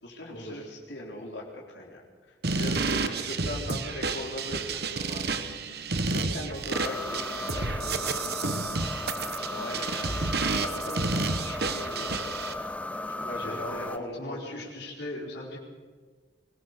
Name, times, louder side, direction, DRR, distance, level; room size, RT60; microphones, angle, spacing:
voice 1, 0.0-5.5 6.1-8.0 9.4-12.6 13.1-14.7, left 1 dB, 85° left, -1 dB, 3.8 m, -40 dB
voice 2, 2.4-3.0 13.4-15.6, left 1 dB, 70° left, -6 dB, 4.7 m, -38 dB
sound 1, 2.4-12.5, right 3 dB, 60° right, 1.2 m, -31 dB
sound 2, 6.7-14.0, left 2 dB, 10° left, 0.8 m, -35 dB
23.0 x 17.5 x 6.6 m, 1.5 s
head